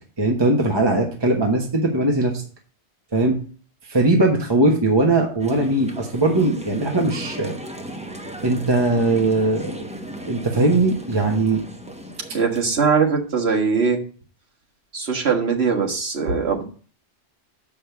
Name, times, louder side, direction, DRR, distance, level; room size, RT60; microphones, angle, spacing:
voice 1, 0.2-2.4 3.1-3.4 3.8-7.5 8.4-9.8 10.2-11.6, right 2 dB, 25° right, 1 dB, 1.3 m, -20 dB
sound 1, 5.4-12.9, equal, 5° right, 0.8 m, -36 dB
voice 2, 12.3-14.0 14.9-16.6, right 5 dB, 65° right, 1 dB, 1.8 m, -21 dB
6.7 x 5.5 x 6.8 m, 0.41 s
omnidirectional pair, 1.2 m